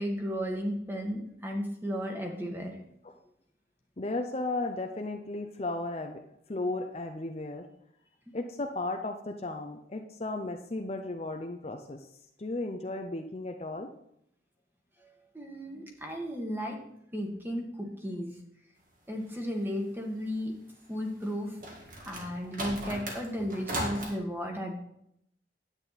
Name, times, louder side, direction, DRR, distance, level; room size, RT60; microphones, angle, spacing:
voice 1, 0.0-2.8 15.0-15.1 15.3-16.8 17.1-18.4 19.1-20.5 20.9-21.6 22.0-24.8, equal, 10° right, 1 dB, 1.6 m, -34 dB
voice 2, 4.0-6.2 6.5-7.7 8.3-12.1 12.4-13.9, left 2 dB, 35° left, 4 dB, 0.6 m, -35 dB
sound 1, 21.2-24.1, right 1 dB, 45° right, 1.9 m, -37 dB
10.0 x 8.8 x 4.1 m, 0.75 s
head